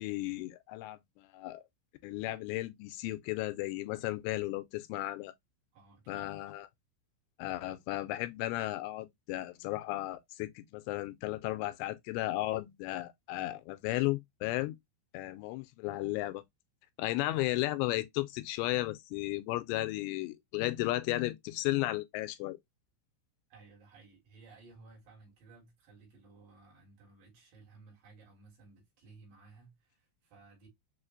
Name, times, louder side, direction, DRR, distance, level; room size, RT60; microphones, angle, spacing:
voice 1, 0.0-1.6 2.0-5.3 6.1-6.7 7.4-14.8 15.1-16.4 17.0-22.6, left 17 dB, 85° left, 2.8 m, -34 dB
voice 2, 5.7-6.3 23.5-30.7, right 3 dB, 60° right, 2.9 m, -57 dB
6.5 x 2.5 x 2.5 m
omnidirectional pair, 5.0 m